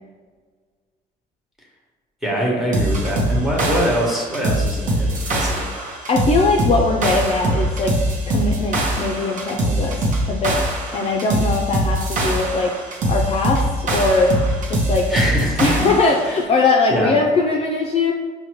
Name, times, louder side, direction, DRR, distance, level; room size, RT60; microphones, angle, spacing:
voice 1, 2.2-5.7 15.1-15.9 16.9-17.1, right 1 dB, ahead, -2 dB, 1.0 m, -23 dB
sound 1, 2.7-16.3, right 1 dB, 50° right, 0.8 m, -22 dB
voice 2, 6.1-8.0 8.3-10.6 10.9-14.4 14.7-15.1 15.6-18.1, left 3 dB, 35° left, 0 dB, 0.4 m, -20 dB
5.0 x 2.2 x 3.0 m, 1.5 s
cardioid pair, 110°, 17 cm